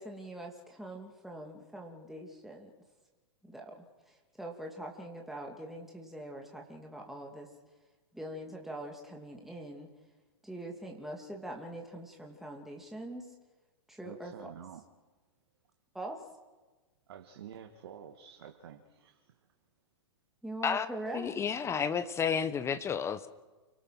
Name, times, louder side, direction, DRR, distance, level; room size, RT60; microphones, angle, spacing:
voice 1, 0.0-2.7 3.5-7.5 8.1-9.9 10.4-13.3 13.9-14.5 15.9-16.2 20.4-21.3, right 1 dB, ahead, 2.8 m, -43 dB
voice 2, 14.0-14.8 17.1-19.3, right 9 dB, 60° right, 2.0 m, -49 dB
voice 3, 21.1-23.3, left 7 dB, 20° left, 1.1 m, -31 dB
29.0 x 18.5 x 6.1 m
figure-of-eight pair, 110°, 14 cm